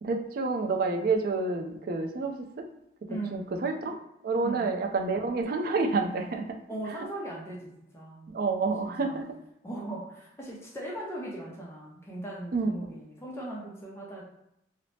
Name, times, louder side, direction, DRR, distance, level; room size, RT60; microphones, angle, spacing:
voice 1, 0.0-2.6 3.3-4.0 4.2-6.6 6.9-7.1 8.3-9.3 12.5-12.7, right 3 dB, 55° right, 3 dB, 0.4 m, -29 dB
voice 2, 3.1-3.6 4.4-4.7 6.7-8.3 8.8-9.2 9.6-14.2, right 1 dB, 15° left, -4 dB, 0.5 m, -39 dB
2.6 x 2.0 x 3.1 m, 0.80 s
head